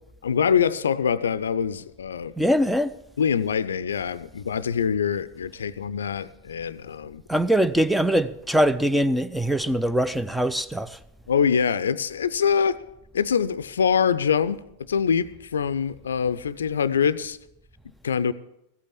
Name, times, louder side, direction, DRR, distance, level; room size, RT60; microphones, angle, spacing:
voice 1, 0.2-2.3 3.2-7.2 11.3-12.8 13.1-17.4 18.0-18.3, left 7 dB, 65° left, 0.5 m, -24 dB
voice 2, 2.4-2.9 7.3-11.0, equal, ahead, 0.5 m, -22 dB
15.0 x 8.4 x 7.3 m
figure-of-eight pair, 90°, 0 cm